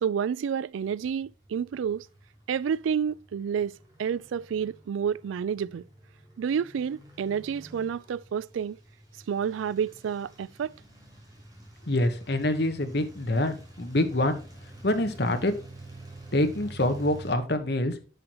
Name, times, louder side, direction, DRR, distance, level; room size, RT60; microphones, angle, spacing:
voice 1, 0.0-2.1 2.5-5.8 6.4-8.8 9.3-10.7, right 7 dB, 80° right, 0.3 m, -29 dB
sound 1, 0.8-17.3, right 2 dB, 20° right, 2.9 m, -49 dB
voice 2, 11.9-14.4 14.8-15.5 16.3-17.9, left 1 dB, 55° left, 1.1 m, -26 dB
9.6 x 6.4 x 3.0 m
head